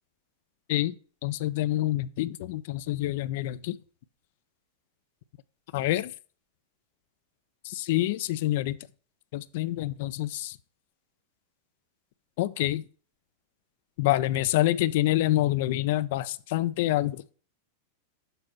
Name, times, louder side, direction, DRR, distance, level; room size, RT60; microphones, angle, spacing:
voice 1, 1.2-3.8 5.7-6.1 7.6-8.8 9.3-10.6 12.4-12.8 14.0-17.2, left 15 dB, 50° left, 0.4 m, -27 dB
6.8 x 4.1 x 5.9 m
figure-of-eight pair, 90°, 0 cm